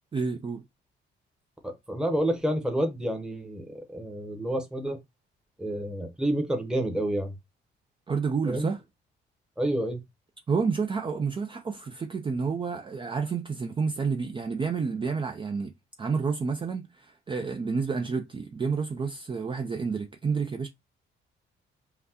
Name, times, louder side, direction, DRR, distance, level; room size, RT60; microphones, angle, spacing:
voice 1, 0.1-0.6 8.1-8.8 10.5-15.7 16.0-20.7, right 5 dB, 25° right, 0.4 m, -29 dB
voice 2, 1.6-5.0 5.6-7.3 8.5-8.7 9.6-10.0, right 1 dB, 5° right, 0.9 m, -29 dB
5.7 x 2.3 x 2.8 m
cardioid pair, 90°, 20 cm